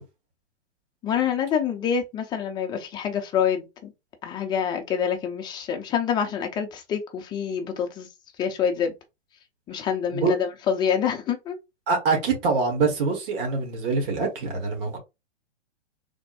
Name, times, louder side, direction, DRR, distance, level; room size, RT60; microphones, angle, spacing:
voice 1, 1.0-3.9 4.2-8.1 8.4-8.9 9.7-11.6, left 7 dB, 15° left, 0.5 m, -26 dB
voice 2, 11.9-15.0, right 4 dB, 50° right, 1.5 m, -24 dB
3.4 x 2.2 x 4.1 m
hypercardioid pair, 130°, 35 cm